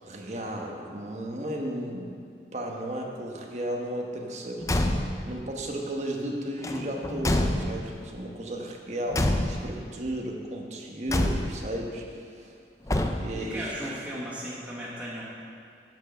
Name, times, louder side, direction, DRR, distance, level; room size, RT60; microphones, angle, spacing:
voice 1, 0.0-2.1 2.5-4.7 5.3-12.6 13.1-13.7, right 1 dB, 40° right, 0 dB, 1.2 m, -34 dB
Car / Truck / Slam, 4.6-5.3 6.6-8.0 9.1-9.9 11.1-11.8 12.9-13.5, left 1 dB, 20° left, 0.4 m, -27 dB
voice 2, 13.4-15.2, equal, 10° right, -7 dB, 1.4 m, -36 dB
8.9 x 6.2 x 6.9 m, 2.3 s
head